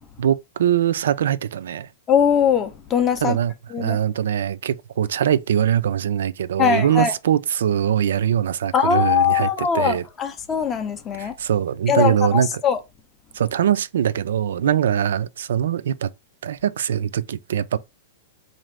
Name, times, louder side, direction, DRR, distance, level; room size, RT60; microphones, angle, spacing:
voice 1, 0.2-1.9 3.2-10.0 11.2-12.6 13.3-16.1 16.4-17.8, right 9 dB, 85° right, 0.3 m, -22 dB
voice 2, 2.1-3.4 3.7-4.0 6.6-7.1 8.7-11.3 11.9-12.8, left 8 dB, 15° left, 0.4 m, -21 dB
4.1 x 2.5 x 3.1 m
supercardioid pair, 180°, 0 cm